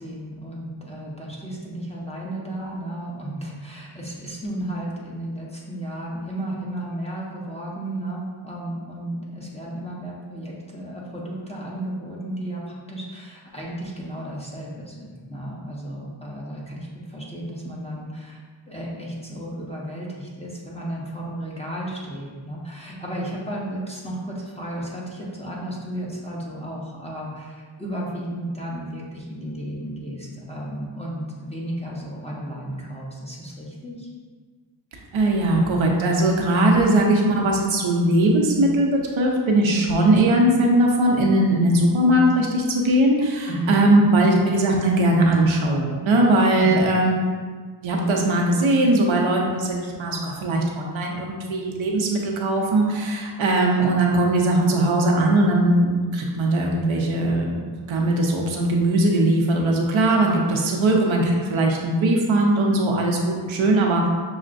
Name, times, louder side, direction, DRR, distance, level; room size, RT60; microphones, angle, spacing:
voice 1, 0.0-18.4 18.7-34.1 36.6-37.0 43.5-43.8 46.6-46.9, right 1 dB, 15° left, -5 dB, 0.9 m, -33 dB
voice 2, 35.1-47.1 47.8-64.1, right 1 dB, 70° right, 0 dB, 0.7 m, -20 dB
6.3 x 2.1 x 2.5 m, 1.5 s
cardioid pair, 75°, 49 cm